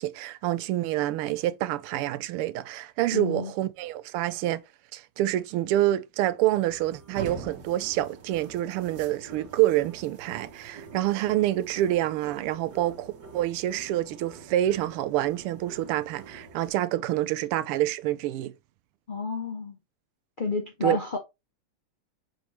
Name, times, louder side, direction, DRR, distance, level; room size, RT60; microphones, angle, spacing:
voice 1, 0.0-4.6 4.9-18.5 20.8-21.0, right 14 dB, 90° right, 1.5 m, -27 dB
voice 2, 3.1-3.5 19.1-19.8 20.4-21.2, left 4 dB, 80° left, 0.4 m, -30 dB
sound 1, 6.5-16.7, right 5 dB, 55° right, 1.7 m, -45 dB
6.0 x 5.2 x 3.0 m
omnidirectional pair, 2.4 m